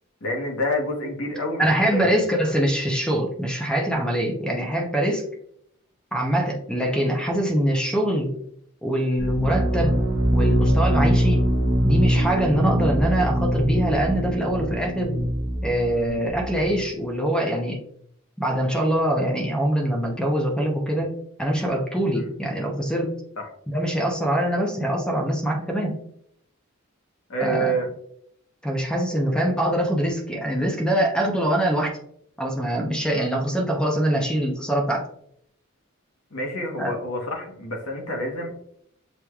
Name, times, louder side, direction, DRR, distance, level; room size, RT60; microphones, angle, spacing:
voice 1, 0.2-1.6 1.9-2.1 22.1-22.3 23.4-23.5 27.3-27.9 36.3-38.5, equal, 75° left, 1 dB, 1.1 m, -27 dB
voice 2, 1.6-5.2 6.1-8.3 8.8-9.9 10.3-11.5 11.8-15.2 15.6-17.8 18.4-23.2 23.7-26.0 27.4-27.8 28.6-31.9 32.4-35.1 36.8-36.9, right 1 dB, 5° left, 0 dB, 0.6 m, -23 dB
sound 1, 9.2-16.8, equal, 75° right, 0.8 m, -23 dB
6.8 x 3.1 x 2.3 m, 0.68 s
head